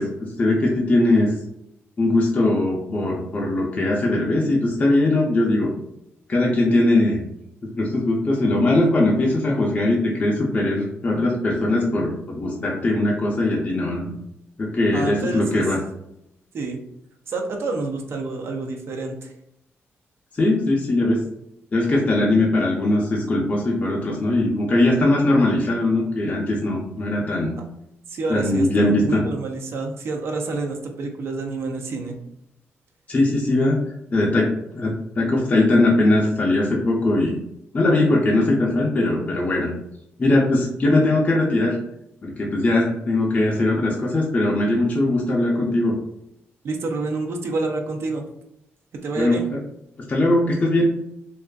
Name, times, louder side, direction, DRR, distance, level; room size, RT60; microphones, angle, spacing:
voice 1, 0.0-1.4 2.0-5.7 6.3-7.2 7.8-14.1 14.6-15.8 20.3-21.2 21.7-27.6 28.3-29.2 33.1-33.8 34.1-37.4 37.7-39.7 40.2-41.8 42.2-45.9 49.2-49.6 50.1-50.8, left 2 dB, 30° left, -3 dB, 0.5 m, -20 dB
voice 2, 14.9-15.6 16.5-16.8 17.3-19.3 28.1-32.1 46.6-48.2 49.0-49.5, right 3 dB, 60° right, 3 dB, 0.4 m, -28 dB
2.4 x 2.3 x 2.2 m, 0.79 s
cardioid pair, 100°, 5 cm